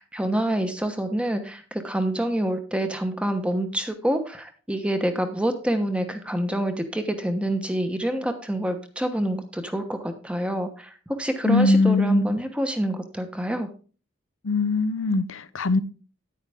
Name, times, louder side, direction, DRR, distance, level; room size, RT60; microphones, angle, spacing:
voice 1, 0.0-13.7, right 1 dB, 5° right, 1.1 m, -27 dB
voice 2, 11.4-12.4 14.4-15.8, left 2 dB, 70° left, 0.7 m, -21 dB
9.8 x 9.4 x 3.5 m
head